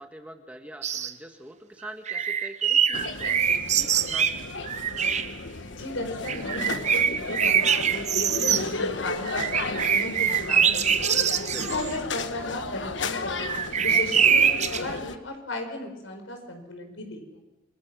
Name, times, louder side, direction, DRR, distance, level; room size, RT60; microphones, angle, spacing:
voice 1, 0.0-4.4 11.4-11.8, right 1 dB, 5° right, 5 dB, 1.5 m, -44 dB
sound 1, 0.8-1.1 1.8-5.3 6.2-8.6 9.3-11.9 13.4-14.9, right 7 dB, 35° right, 0.9 m, -24 dB
sound 2, 2.9-15.2, left 3 dB, 70° left, 1.3 m, -34 dB
voice 2, 5.7-11.2 11.7-13.5 13.8-17.4, left 2 dB, 85° left, 5 dB, 5.1 m, -35 dB
29.5 x 21.5 x 6.2 m, 0.95 s
head